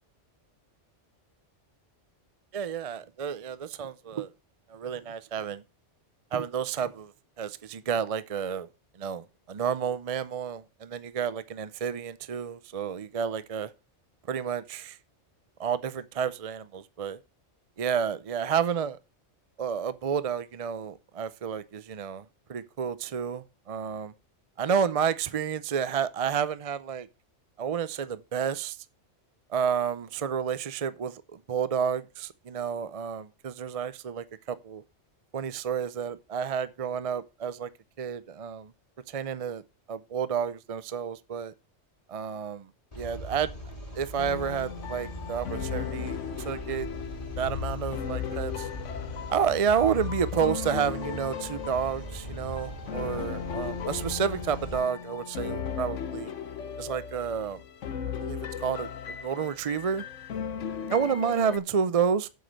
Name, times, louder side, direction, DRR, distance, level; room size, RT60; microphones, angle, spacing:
voice 1, 2.5-4.3 4.7-5.6 6.3-7.1 7.4-8.7 9.0-13.7 14.3-15.0 15.6-17.2 17.8-19.0 19.6-22.2 22.5-24.1 24.6-27.1 27.6-28.8 29.5-34.8 35.3-37.7 38.0-38.7 39.1-39.6 39.9-41.5 42.1-42.7 43.0-43.5 44.0-46.9 47.4-48.7 49.3-56.3 56.8-57.6 58.2-58.9 59.2-60.0 60.9-62.3, right 7 dB, 45° right, 0.5 m, -30 dB
sound 1, 42.9-54.8, equal, 30° left, 2.6 m, -41 dB
sound 2, 44.2-61.6, left 8 dB, 85° left, 1.2 m, -36 dB
7.9 x 5.2 x 7.5 m
omnidirectional pair, 1.2 m